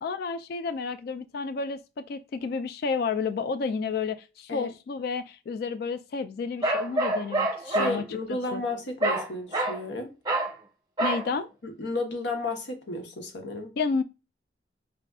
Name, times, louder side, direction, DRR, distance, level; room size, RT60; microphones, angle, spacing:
voice 1, 0.0-7.5 7.7-8.2 8.5-8.6 11.0-11.5 13.8-14.0, left 5 dB, 60° left, 0.3 m, -31 dB
Bark, 6.6-8.0 9.0-9.3 9.5-9.8 10.2-10.5 11.0-11.3, right 2 dB, 25° right, 0.9 m, -26 dB
voice 2, 7.6-10.1 11.6-13.7, left 2 dB, 90° left, 1.0 m, -33 dB
4.9 x 3.5 x 2.3 m
head